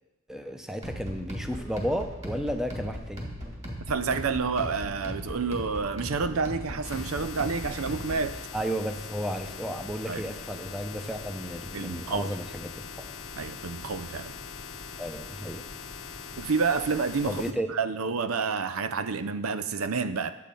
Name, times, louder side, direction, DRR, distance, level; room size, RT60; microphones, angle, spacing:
voice 1, 0.3-3.3 8.5-13.1 15.0-15.7 17.3-17.7, equal, ahead, 6 dB, 0.7 m, -33 dB
sound 1, 0.8-8.3, equal, 30° right, 2.3 m, -38 dB
voice 2, 3.9-8.4 10.1-10.2 11.7-12.3 13.4-14.3 16.4-17.4 17.7-20.3, right 5 dB, 90° right, 12 dB, 0.6 m, -29 dB
sound 2, 6.8-17.5, left 6 dB, 65° left, 0.9 m, -41 dB
10.5 x 7.6 x 5.3 m, 0.98 s
head